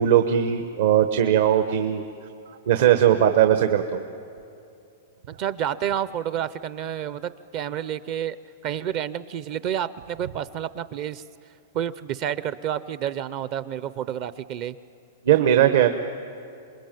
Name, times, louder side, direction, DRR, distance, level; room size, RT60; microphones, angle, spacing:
voice 1, 0.0-2.1 2.5-4.1 15.2-15.9, right 10 dB, 65° right, 7 dB, 1.1 m, -19 dB
voice 2, 5.3-8.4 8.6-11.2 11.7-14.8, right 10 dB, 35° right, 15 dB, 0.5 m, -29 dB
27.0 x 21.5 x 9.1 m, 2.6 s
supercardioid pair, 160°, 0 cm